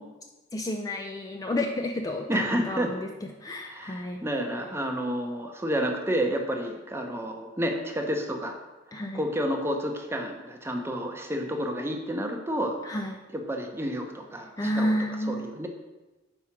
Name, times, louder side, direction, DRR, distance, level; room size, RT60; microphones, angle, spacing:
voice 1, 0.5-4.2 8.9-9.2 12.8-13.2 14.6-15.6, left 1 dB, 20° left, 3 dB, 0.3 m, -31 dB
voice 2, 2.3-2.9 3.6-8.6 8.9-12.8 13.3-14.9 15.3-15.7, equal, 15° right, 3 dB, 0.7 m, -30 dB
4.8 x 4.4 x 5.8 m, 1.1 s
head